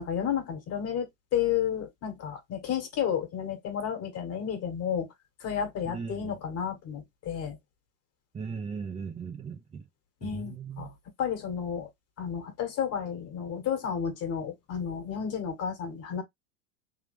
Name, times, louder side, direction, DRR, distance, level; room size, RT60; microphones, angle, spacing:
voice 1, 0.0-5.1 5.4-7.6 10.2-10.9 11.2-11.9 12.2-16.2, left 8 dB, 45° left, 1.7 m, -32 dB
voice 2, 5.8-6.4 8.3-9.9 10.2-10.9, right 5 dB, 20° right, 0.7 m, -38 dB
3.5 x 2.8 x 3.4 m
hypercardioid pair, 100°, 36 cm